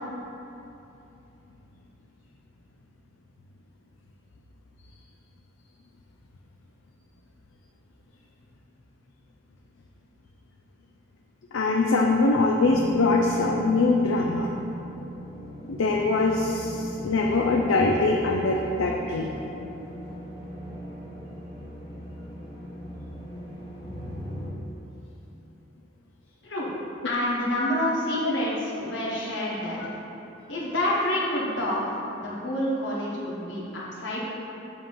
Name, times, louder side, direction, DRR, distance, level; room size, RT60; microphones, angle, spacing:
voice 1, 11.5-14.5 15.7-19.3 27.6-27.7 28.2-28.3 29.8-29.9, left 3 dB, 90° left, 0 dB, 0.5 m, -23 dB
sound 1, 12.6-24.5, equal, 30° left, 1.3 m, -39 dB
voice 2, 27.0-29.8 30.5-34.2, left 1 dB, 65° left, -6 dB, 1.5 m, -28 dB
7.2 x 3.1 x 5.7 m, 2.9 s
head